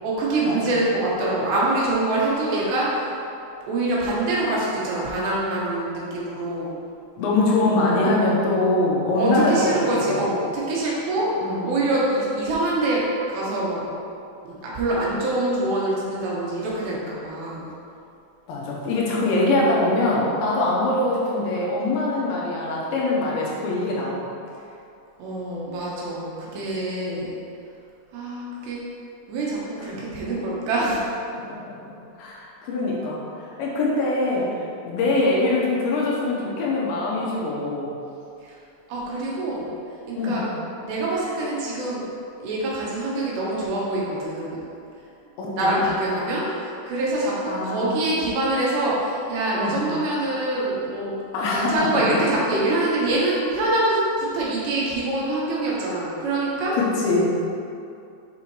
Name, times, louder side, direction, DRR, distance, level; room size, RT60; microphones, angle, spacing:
voice 1, 0.0-3.1 3.7-6.7 9.2-11.3 11.6-13.9 14.4-17.7 25.2-27.3 28.1-28.8 29.3-31.0 38.4-38.5 38.9-39.7 40.1-40.5 40.8-42.0 42.4-44.6 45.5-51.1 51.5-56.7, right 2 dB, 75° right, -5 dB, 3.2 m, -25 dB
voice 2, 7.2-10.2 11.4-11.7 18.5-24.3 29.8-29.9 31.3-37.9 40.1-40.5 45.4-45.8 47.5-48.0 49.6-49.8 51.3-52.0 56.7-57.3, left 2 dB, 85° left, -4 dB, 3.3 m, -23 dB
7.6 x 5.7 x 3.1 m, 2.6 s
omnidirectional pair, 5.2 m